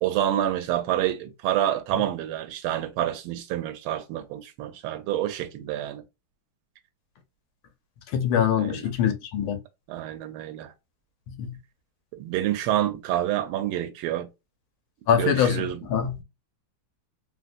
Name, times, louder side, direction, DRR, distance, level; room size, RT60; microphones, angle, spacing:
voice 1, 0.0-6.0 8.6-8.9 9.9-10.7 12.1-14.3 15.2-15.8, right 12 dB, 85° right, 1.4 m, -28 dB
voice 2, 8.1-9.6 11.4-11.6 15.1-16.2, left 8 dB, 80° left, 1.5 m, -24 dB
3.6 x 2.5 x 2.3 m
omnidirectional pair, 2.4 m